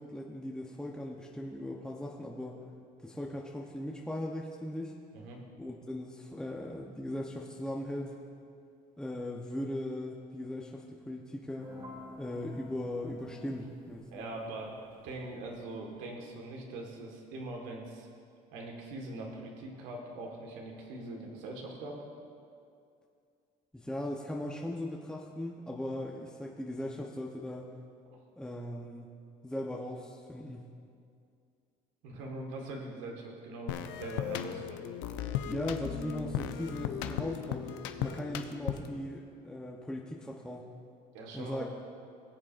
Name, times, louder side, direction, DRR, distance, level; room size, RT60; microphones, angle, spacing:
voice 1, 0.0-2.6 3.0-4.9 5.6-8.1 9.0-11.8 12.2-14.2 23.7-27.8 28.4-29.1 29.4-30.7 35.4-37.7 38.0-40.7 41.3-41.6, left 1 dB, 5° left, -2 dB, 0.9 m, -38 dB
sound 1, 11.6-16.2, left 1 dB, 25° right, 2.5 m, -51 dB
voice 2, 14.1-14.8 15.0-18.1 18.5-22.0 32.0-34.9 41.1-41.6, right 2 dB, 80° right, 0 dB, 1.7 m, -42 dB
sound 2, 33.7-39.0, left 9 dB, 80° left, 0.6 m, -36 dB
20.5 x 7.3 x 2.6 m, 2.4 s
supercardioid pair, 75°, 19 cm